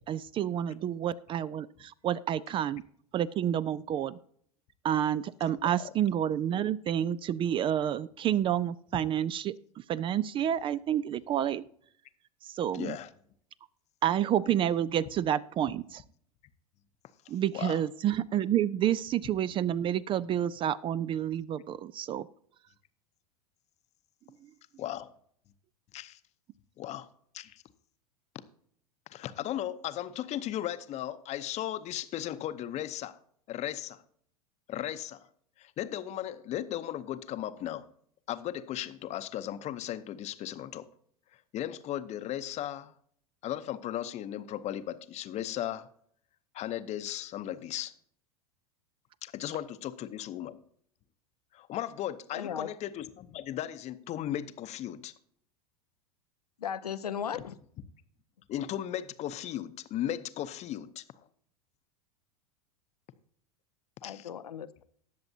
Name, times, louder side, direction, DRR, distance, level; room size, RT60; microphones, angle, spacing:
voice 1, 0.1-2.8 3.1-4.2 4.8-11.6 12.4-13.0 14.0-16.0 17.3-22.3, right 10 dB, 25° right, 0.3 m, -29 dB
voice 2, 12.7-13.1 17.5-17.8 24.8-25.1 25.9-26.2 26.8-27.1 27.3-27.6 29.1-33.2 33.5-34.0 34.7-35.3 35.6-37.9 38.3-40.9 41.5-42.9 43.4-45.9 46.5-47.9 49.2-50.6 51.5-55.1 58.5-61.0 64.0-64.3, left 12 dB, 35° left, 0.8 m, -36 dB
voice 3, 52.3-52.7 56.6-57.5 64.0-64.8, left 8 dB, 85° left, 0.6 m, -36 dB
19.0 x 6.9 x 2.7 m
hypercardioid pair, 90°, 20 cm